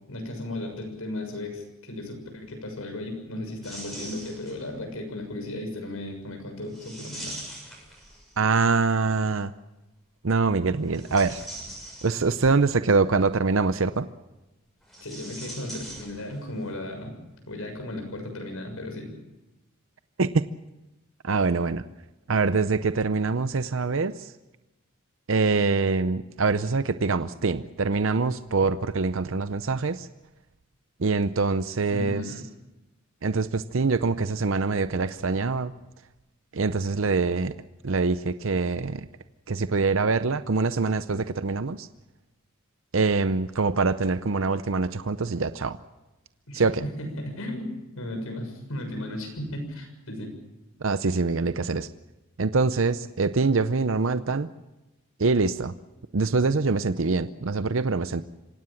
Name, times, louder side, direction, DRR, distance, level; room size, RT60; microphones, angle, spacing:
voice 1, 0.1-7.4 15.0-17.1 17.5-19.1 31.9-32.5 46.5-50.3, left 1 dB, 70° left, 4 dB, 6.7 m, -35 dB
sound 1, 3.6-4.8 6.7-8.6 10.8-12.5 14.8-16.6 16.8-16.9 17.9-18.1, right 1 dB, ahead, 6.6 m, -41 dB
voice 2, 8.4-9.5 10.2-11.4 12.0-14.1 20.2-20.3 21.2-21.8 22.3-24.3 25.3-30.1 31.0-32.2 33.2-35.7 36.5-37.5 37.8-39.1 39.5-41.9 42.9-45.8 46.5-46.8 50.8-51.9 52.4-54.5 55.2-55.7 56.1-58.2, right 4 dB, 60° right, 12 dB, 0.7 m, -24 dB
25.5 x 17.5 x 7.3 m, 1.0 s
head